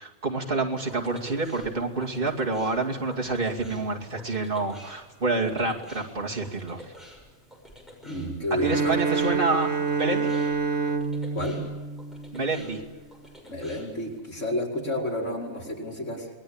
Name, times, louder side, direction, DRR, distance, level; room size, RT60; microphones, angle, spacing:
voice 1, 0.0-6.8 8.6-9.7 10.0-10.3 12.3-12.8, right 3 dB, 45° right, 0 dB, 2.6 m, -28 dB
sound 1, 0.7-14.2, equal, ahead, 6.5 m, -49 dB
voice 2, 8.0-9.0 11.3-11.6 13.4-16.3, left 1 dB, 90° left, -2 dB, 5.5 m, -30 dB
Bowed string instrument, 8.6-12.9, right 4 dB, 65° right, 1.8 m, -28 dB
27.0 x 21.0 x 8.8 m, 1.2 s
omnidirectional pair, 1.2 m